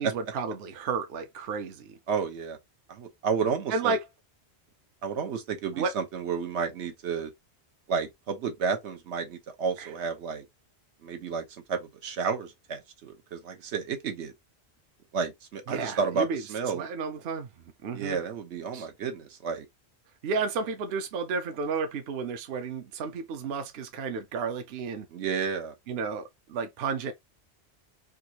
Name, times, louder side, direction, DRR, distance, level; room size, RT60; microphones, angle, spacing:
voice 1, 0.0-2.0 3.7-4.0 5.7-5.9 9.8-9.9 15.7-16.4 16.7-17.5 17.8-18.2 18.7-18.9 20.2-25.1 25.9-27.1, right 5 dB, 70° right, 0.8 m, -32 dB
voice 2, 2.1-2.6 2.9-4.0 5.0-7.3 7.9-10.4 11.0-14.3 15.1-16.9 17.9-19.6 25.1-25.7, right 5 dB, 90° right, 1.1 m, -31 dB
3.6 x 2.4 x 2.8 m
omnidirectional pair, 1.1 m